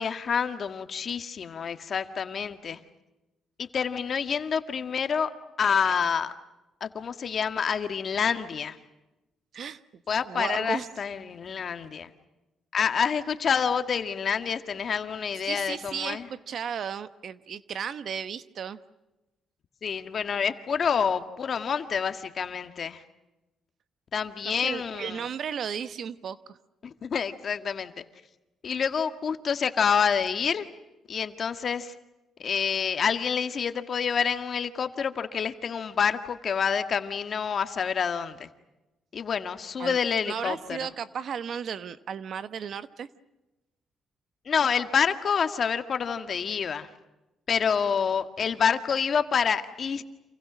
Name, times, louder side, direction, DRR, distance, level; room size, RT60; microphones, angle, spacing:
voice 1, 0.0-2.8 3.7-5.3 5.6-6.3 6.8-8.8 10.1-12.1 12.7-16.3 19.8-23.0 24.1-25.2 26.8-27.9 28.6-30.7 31.1-31.9 32.4-38.5 39.1-40.9 44.5-46.9 47.5-50.0, left 6 dB, 50° left, 8 dB, 1.8 m, -27 dB
voice 2, 10.2-10.9 15.5-18.8 24.6-26.6 39.8-40.0 40.3-43.1, right 7 dB, 60° right, 13 dB, 1.1 m, -34 dB
29.5 x 27.5 x 6.3 m, 1.0 s
cardioid pair, 90°, 0 cm